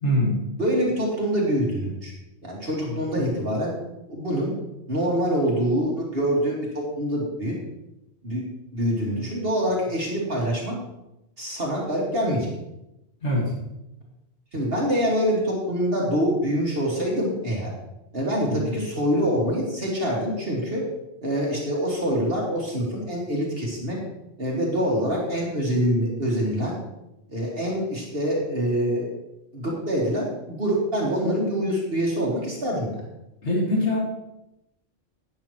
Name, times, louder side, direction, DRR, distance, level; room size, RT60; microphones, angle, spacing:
voice 1, 0.0-0.4 2.9-3.0 13.2-13.5 18.5-18.7 33.4-34.0, left 1 dB, 60° left, -3 dB, 2.4 m, -23 dB
voice 2, 0.6-2.1 2.4-3.8 4.1-4.5 4.9-7.5 8.2-8.4 8.7-10.8 11.4-12.5 14.5-17.7 18.1-20.8 21.2-24.0 24.4-26.8 27.3-29.1 29.5-33.0, equal, 50° right, -3 dB, 2.3 m, -25 dB
11.0 x 9.6 x 3.1 m, 0.89 s
omnidirectional pair, 1.3 m